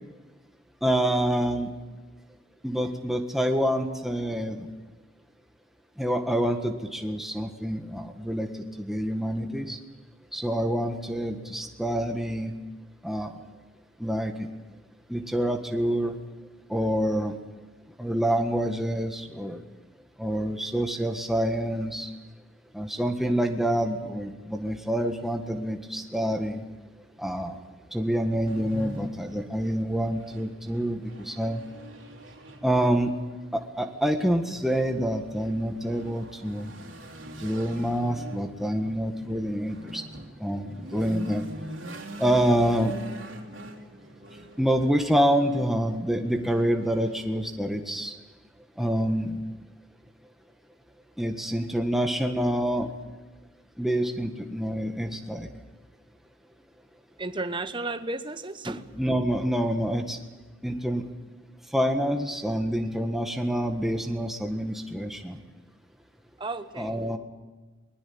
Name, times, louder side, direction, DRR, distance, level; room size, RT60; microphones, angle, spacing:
voice 1, 0.8-1.7 2.6-4.7 6.0-9.8 10.3-12.5 13.0-13.3 14.0-14.5 15.1-16.2 16.7-17.3 18.0-19.6 20.2-22.1 22.7-26.6 27.2-27.6 27.9-31.6 32.6-33.1 33.5-36.7 37.4-40.0 40.4-41.4 42.2-42.9 44.6-48.1 48.8-49.4 51.2-52.9 53.8-55.5 59.0-60.2 60.6-61.0 61.7-65.4 66.8-67.2, equal, ahead, 3 dB, 1.6 m, -27 dB
sound 1, 28.4-47.7, right 1 dB, 75° right, 3.4 m, -44 dB
voice 2, 57.2-58.8 66.4-67.1, right 2 dB, 25° right, 10 dB, 1.0 m, -33 dB
22.5 x 21.0 x 8.8 m, 1.3 s
head